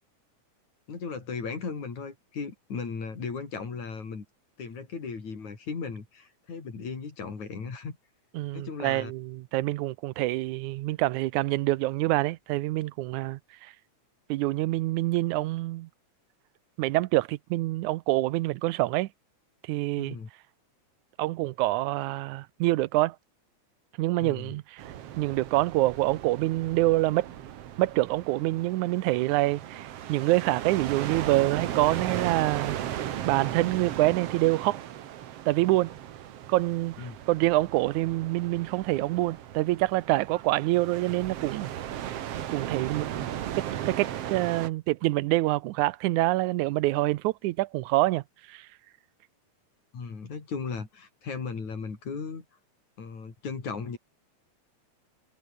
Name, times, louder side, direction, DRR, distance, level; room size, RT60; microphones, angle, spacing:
voice 1, 0.9-4.2 4.6-8.0 8.5-9.1 20.0-20.3 24.2-24.5 37.0-37.2 49.9-52.5 53.0-54.0, left 5 dB, 75° left, 6.0 m, -36 dB
voice 2, 8.4-13.4 14.3-15.9 16.8-19.1 19.7-20.2 21.2-23.2 24.0-24.9 25.2-27.3 27.8-34.8 35.5-35.9 36.5-37.0 37.3-41.7 42.5-43.1 43.6-48.7, right 18 dB, 90° right, 2.1 m, -26 dB
sound 1, 24.8-44.7, right 11 dB, 60° right, 2.1 m, -37 dB
omnidirectional pair, 3.3 m